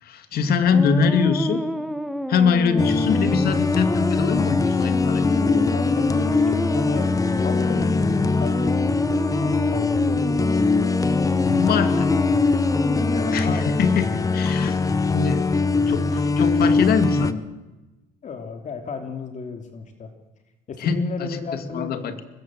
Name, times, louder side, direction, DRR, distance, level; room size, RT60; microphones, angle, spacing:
voice 1, 0.0-1.6 2.3-5.2 11.4-12.1 13.3-14.8 15.1-15.5 15.9-17.4 20.8-22.2, left 6 dB, 65° left, 9 dB, 2.6 m, -23 dB
sound 1, 0.7-14.0, equal, ahead, 1.4 m, -29 dB
voice 2, 2.7-3.0 5.4-7.1 7.4-10.4 13.0-13.8 14.2-14.3 18.2-20.1 20.7-21.9, left 4 dB, 45° left, 6 dB, 3.1 m, -34 dB
sound 2, 2.8-17.3, left 4 dB, 20° left, 1.1 m, -22 dB
24.5 x 21.0 x 7.7 m, 1.1 s
cardioid pair, 110°, 17 cm